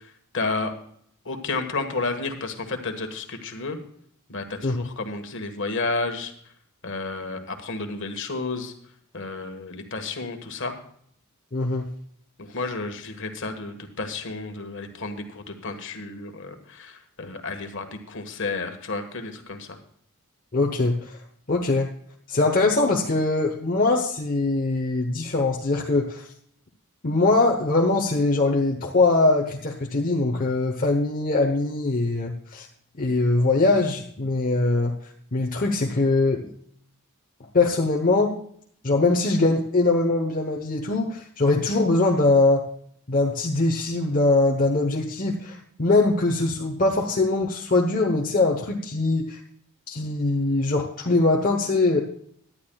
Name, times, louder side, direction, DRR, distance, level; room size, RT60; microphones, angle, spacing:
voice 1, 0.3-0.7 1.2-3.8 4.3-6.3 6.8-8.7 9.1-10.7 12.4-19.8, left 3 dB, 55° left, 6 dB, 1.4 m, -31 dB
voice 2, 11.5-11.9 20.5-21.0 21.5-21.9 22.3-26.3 27.0-32.7 33.0-34.9 35.3-36.5 37.5-38.3 38.8-42.6 43.1-49.4 49.9-52.0, left 2 dB, 40° left, 1 dB, 0.9 m, -22 dB
18.0 x 11.5 x 2.3 m, 0.64 s
head